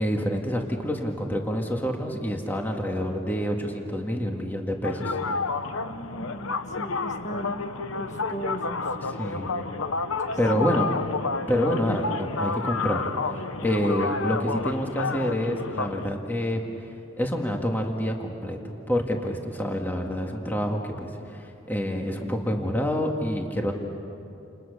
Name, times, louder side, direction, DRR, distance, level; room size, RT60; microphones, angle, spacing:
voice 1, 0.0-5.2 9.0-9.5 10.4-10.9 11.5-18.6 18.9-23.7, equal, 10° left, 1 dB, 1.9 m, -27 dB
sound 1, 4.8-16.1, left 4 dB, 85° left, 1.0 m, -30 dB
voice 2, 5.9-8.9 9.1-9.3 10.6-10.9, right 1 dB, 35° left, 2 dB, 1.8 m, -37 dB
29.5 x 29.5 x 6.8 m, 2.7 s
head